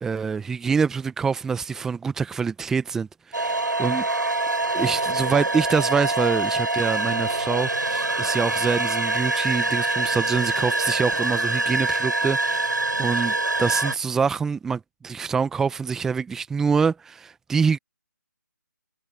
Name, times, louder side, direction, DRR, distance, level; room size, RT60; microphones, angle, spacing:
voice 1, 0.0-4.1 4.7-17.8, right 5 dB, 5° right, 1.1 m, -25 dB
sound 1, 3.3-13.9, right 2 dB, 80° right, 6.7 m, -25 dB
figure-of-eight pair, 150°, 10 cm